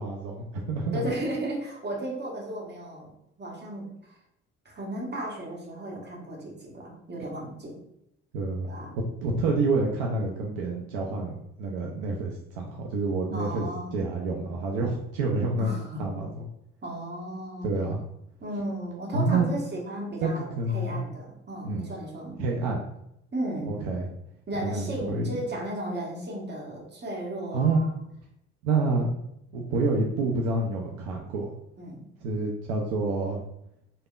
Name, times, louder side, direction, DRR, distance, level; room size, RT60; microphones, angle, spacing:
voice 1, 0.0-1.0 8.3-8.7 9.2-13.7 13.9-16.3 17.6-18.0 19.1-19.5 20.2-21.1 21.6-21.8 22.4-22.8 23.7-24.1 24.6-25.4 27.5-27.8 28.6-29.1 29.5-31.5 32.2-33.4, right 3 dB, 70° right, 0 dB, 0.5 m, -28 dB
voice 2, 0.9-3.1 3.4-4.2 4.6-7.8 8.6-9.0 13.3-14.0 15.6-16.0 16.8-17.7 18.4-22.4 23.3-23.8 24.5-27.9 31.8-32.1, right 1 dB, 30° right, -2 dB, 1.1 m, -35 dB
3.2 x 2.0 x 2.3 m, 0.79 s
figure-of-eight pair, 50°, 35 cm